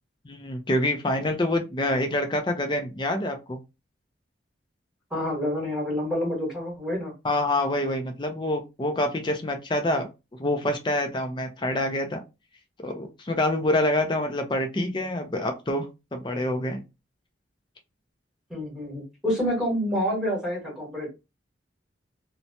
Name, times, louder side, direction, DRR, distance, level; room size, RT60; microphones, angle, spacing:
voice 1, 0.2-3.6 7.2-10.1 10.4-12.2 12.8-16.8, left 1 dB, 25° left, 5 dB, 0.5 m, -26 dB
voice 2, 5.1-7.1 18.5-21.1, equal, 5° right, -3 dB, 1.3 m, -28 dB
3.0 x 2.1 x 2.6 m, 0.26 s
head